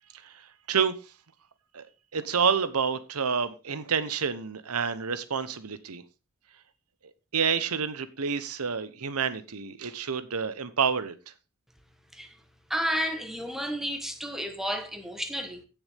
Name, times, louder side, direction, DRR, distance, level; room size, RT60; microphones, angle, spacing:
voice 1, 2.1-6.0 7.3-11.1, right 6 dB, 90° right, 1.0 m, -28 dB
voice 2, 12.7-15.6, equal, ahead, 1.3 m, -31 dB
16.0 x 6.9 x 3.5 m
head